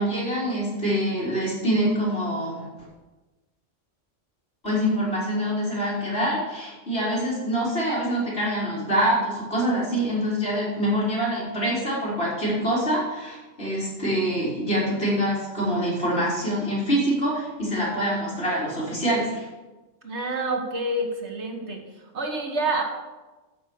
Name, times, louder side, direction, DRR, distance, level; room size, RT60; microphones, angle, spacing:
voice 1, 0.0-2.6 4.6-19.5, equal, 55° left, -7 dB, 4.5 m, -25 dB
voice 2, 20.0-21.8 22.1-22.8, right 2 dB, 65° right, 3 dB, 1.7 m, -27 dB
13.5 x 5.3 x 7.0 m, 1.2 s
omnidirectional pair, 1.3 m